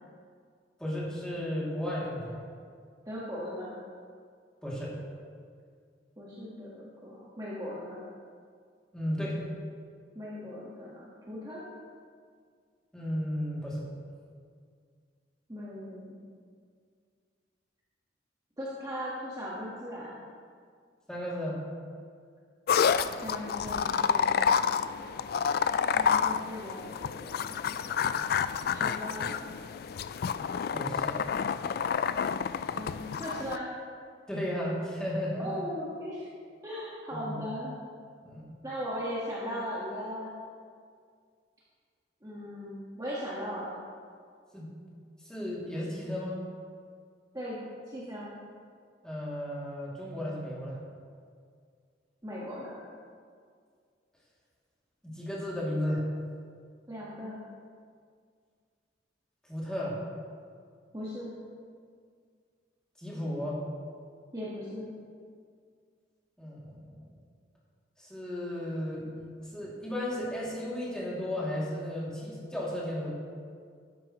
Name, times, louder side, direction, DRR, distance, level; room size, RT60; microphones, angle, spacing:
voice 1, 0.8-2.4 4.6-5.0 8.9-9.4 12.9-13.9 21.1-21.6 30.7-31.2 34.3-35.5 37.1-37.4 38.2-38.6 44.5-44.7 45.2-46.4 49.0-50.8 55.0-56.0 59.5-60.0 63.0-63.6 66.4-66.9 68.0-73.1, left 1 dB, 5° left, -7 dB, 2.5 m, -34 dB
voice 2, 3.0-3.7 6.2-8.0 10.1-11.6 15.5-16.1 18.6-20.1 23.1-24.8 25.9-28.3 28.7-29.4 32.6-33.7 35.4-36.3 36.6-37.7 38.6-40.3 42.2-43.7 47.3-48.3 52.2-52.8 56.9-57.4 60.9-61.4 64.3-64.9, equal, 20° right, -7 dB, 1.4 m, -38 dB
sound 1, 22.7-33.6, left 7 dB, 55° left, 0.3 m, -29 dB
12.5 x 11.0 x 3.0 m, 2.1 s
head